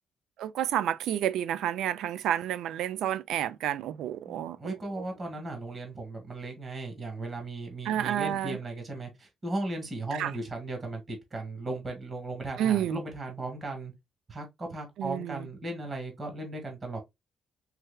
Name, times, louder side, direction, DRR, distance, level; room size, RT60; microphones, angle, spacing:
voice 1, 0.4-5.0 7.9-8.6 10.2-10.3 12.6-13.0 15.0-15.5, right 11 dB, 85° right, 0.3 m, -30 dB
voice 2, 4.2-13.9 14.3-17.0, right 2 dB, 35° right, 2.0 m, -37 dB
4.6 x 3.3 x 2.2 m
cardioid pair, 90°, 0 cm